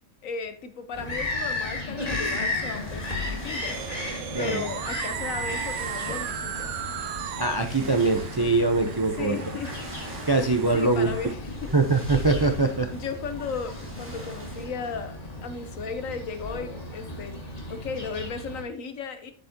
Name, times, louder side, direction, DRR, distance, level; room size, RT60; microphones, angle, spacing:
voice 1, 0.2-4.1 4.4-6.8 9.1-9.7 10.5-11.7 12.9-15.2 15.4-17.4 17.7-19.3, left 5 dB, 70° left, 9 dB, 1.3 m, -35 dB
Bird vocalization bird call bird song, 0.9-18.6, left 2 dB, 25° left, 1.9 m, -35 dB
sound 1, 2.6-14.7, right 1 dB, 10° right, 2.3 m, -43 dB
sound 2, 3.7-11.3, right 9 dB, 65° right, 0.9 m, -36 dB
voice 2, 7.4-9.4 10.3-11.1 11.7-12.9, right 3 dB, 35° right, 6 dB, 0.4 m, -23 dB
8.2 x 8.0 x 2.8 m, 0.41 s
omnidirectional pair, 1.5 m